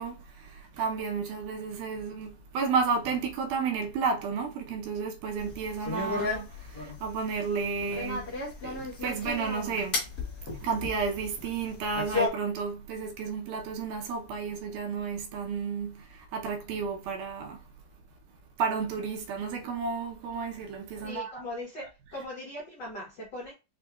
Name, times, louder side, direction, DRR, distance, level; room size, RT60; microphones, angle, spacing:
voice 1, 0.0-10.0 10.5-17.6 18.6-21.4, right 5 dB, 75° right, 2.2 m, -32 dB
sound 1, 5.4-12.3, left 3 dB, 50° left, 1.2 m, -34 dB
voice 2, 21.0-23.5, left 1 dB, 75° left, 0.9 m, -39 dB
6.0 x 2.6 x 2.3 m
omnidirectional pair, 3.9 m